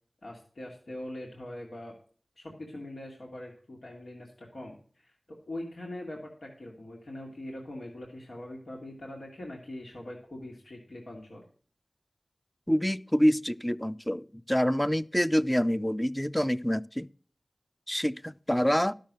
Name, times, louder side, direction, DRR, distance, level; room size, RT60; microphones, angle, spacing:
voice 1, 0.2-1.9 2.4-11.4, left 1 dB, 85° left, 2.2 m, -42 dB
voice 2, 12.7-17.1 17.9-18.9, equal, 10° left, 0.5 m, -26 dB
12.0 x 6.5 x 6.2 m
wide cardioid pair, 55°, 0 cm